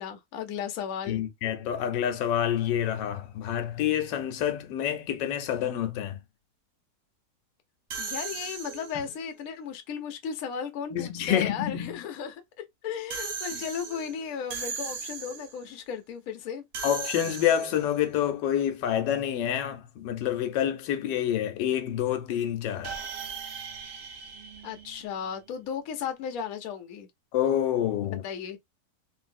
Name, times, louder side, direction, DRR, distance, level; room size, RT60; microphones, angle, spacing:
voice 1, 0.0-1.2 8.0-12.4 12.8-16.6 24.6-27.1 28.2-28.6, left 7 dB, 60° left, 1.0 m, -35 dB
voice 2, 1.1-6.2 10.9-12.0 13.5-13.6 16.8-23.0 27.3-28.2, left 10 dB, 90° left, 1.3 m, -28 dB
sound 1, 7.9-9.2 13.1-15.6 16.7-18.0 22.8-25.4, right 5 dB, 65° right, 0.6 m, -38 dB
3.0 x 2.7 x 2.4 m
omnidirectional pair, 1.9 m